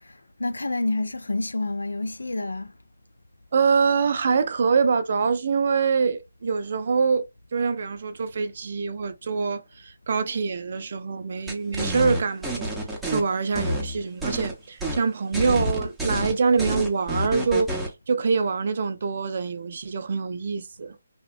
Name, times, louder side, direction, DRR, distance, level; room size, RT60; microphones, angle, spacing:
voice 1, 0.4-2.7, left 2 dB, 85° left, 0.4 m, -28 dB
voice 2, 3.5-7.2 7.5-12.7 13.1-17.7 18.1-21.0, right 5 dB, 50° right, 0.5 m, -24 dB
sound 1, 11.5-13.2 13.5-14.5 14.8-15.0 15.3-17.9, equal, 5° right, 0.7 m, -28 dB
2.8 x 2.1 x 2.5 m
figure-of-eight pair, 155°, 0 cm